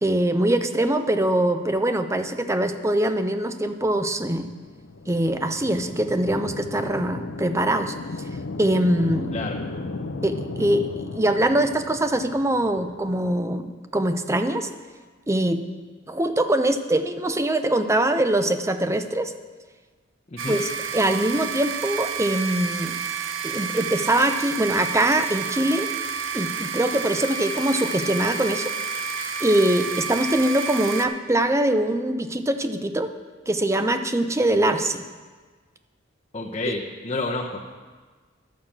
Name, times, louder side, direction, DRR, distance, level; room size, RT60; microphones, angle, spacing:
voice 1, 0.0-4.5 5.1-7.9 8.6-9.3 10.2-14.7 15.3-15.6 16.1-19.3 20.5-23.0 23.4-25.9 26.3-28.7 29.4-33.1 33.5-35.0 36.7-36.8, right 1 dB, 15° right, 8 dB, 0.6 m, -23 dB
sound 1, 3.8-13.3, left 3 dB, 70° left, 0.6 m, -35 dB
sound 2, 20.4-31.1, right 6 dB, 70° right, 0.7 m, -30 dB
voice 2, 36.3-37.7, left 2 dB, 35° left, -2 dB, 0.9 m, -29 dB
11.5 x 6.4 x 7.3 m, 1.4 s
head